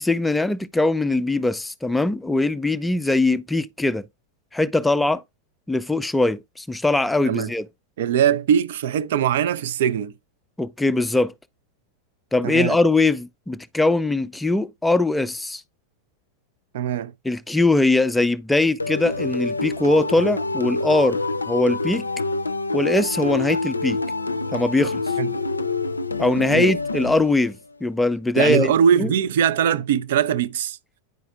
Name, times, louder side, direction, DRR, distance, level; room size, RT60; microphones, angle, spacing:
voice 1, 0.0-4.0 4.5-5.2 5.7-7.7 10.6-11.3 12.3-15.6 17.2-21.2 21.5-22.0 22.7-24.0 24.5-25.0 26.2-28.7 29.0-29.1, left 2 dB, 5° left, 0.4 m, -21 dB
voice 2, 8.0-10.1 12.4-12.8 16.7-17.1 25.2-25.4 26.5-26.8 28.4-30.8, right 9 dB, 55° right, 0.4 m, -21 dB
sound 1, 18.8-27.7, left 3 dB, 80° left, 0.4 m, -26 dB
9.2 x 4.8 x 2.3 m
figure-of-eight pair, 90°, 0 cm